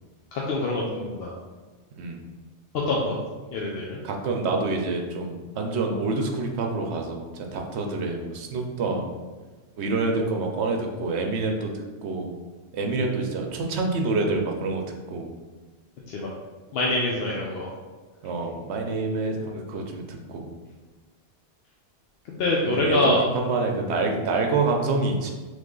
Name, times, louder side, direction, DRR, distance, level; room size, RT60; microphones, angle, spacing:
voice 1, 0.3-1.3 2.9-3.2 3.5-4.0 16.1-16.3 16.7-17.7 22.4-23.2, left 2 dB, 65° left, -3 dB, 0.8 m, -25 dB
voice 2, 2.0-2.3 4.0-9.1 9.8-12.4 12.7-14.8 15.1-15.3 18.2-20.5 22.6-25.3, right 3 dB, 75° right, 2 dB, 0.9 m, -27 dB
3.5 x 3.2 x 3.8 m, 1.3 s
omnidirectional pair, 1.2 m